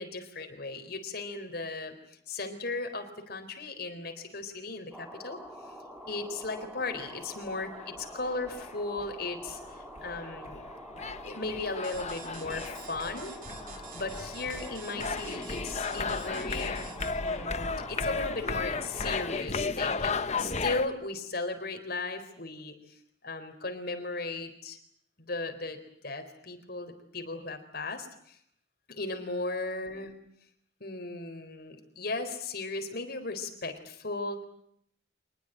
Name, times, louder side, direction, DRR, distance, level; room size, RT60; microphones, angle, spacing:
voice 1, 0.0-2.0 2.3-5.4 6.1-10.6 11.2-13.4 13.9-16.9 17.2-23.0 23.2-24.8 25.2-28.4 28.9-30.1 30.8-34.4, left 3 dB, 55° left, 6 dB, 4.1 m, -36 dB
sound 1, 4.9-19.4, equal, 5° right, 4.2 m, -46 dB
sound 2, 7.8-8.7 9.0-20.9, left 4 dB, 35° left, 1.1 m, -35 dB
sound 3, 11.8-17.4, right 7 dB, 50° right, 3.2 m, -49 dB
26.0 x 21.0 x 9.1 m, 0.68 s
head